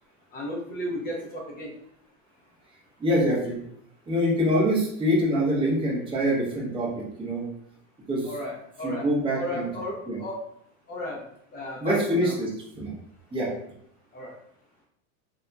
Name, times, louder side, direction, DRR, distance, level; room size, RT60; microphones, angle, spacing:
voice 1, 0.3-1.7 8.2-9.0 9.3-10.4 10.9-11.2 11.5-12.4 14.1-14.3, left 1 dB, 20° left, -1 dB, 0.6 m, -34 dB
voice 2, 3.0-3.6 4.1-7.5 8.1-8.3 8.8-9.7 10.1-10.2 11.8-12.9 13.3-13.5, equal, 10° right, -6 dB, 0.8 m, -25 dB
3.8 x 2.8 x 2.2 m, 0.72 s
cardioid pair, 170°, 42 cm